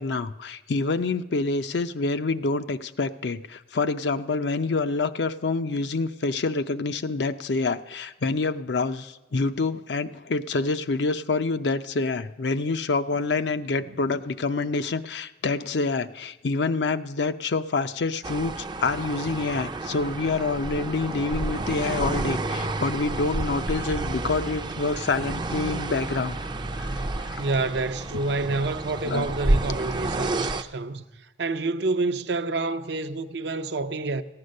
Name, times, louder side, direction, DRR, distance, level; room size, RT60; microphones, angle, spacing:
voice 1, 0.0-26.4 26.7-27.4 29.0-29.3, left 3 dB, 65° left, 0.5 m, -27 dB
sound 1, 18.2-30.6, right 2 dB, 25° right, 0.5 m, -30 dB
voice 2, 27.4-31.1 31.4-34.2, right 3 dB, 65° right, 0.6 m, -28 dB
15.0 x 9.7 x 6.5 m
head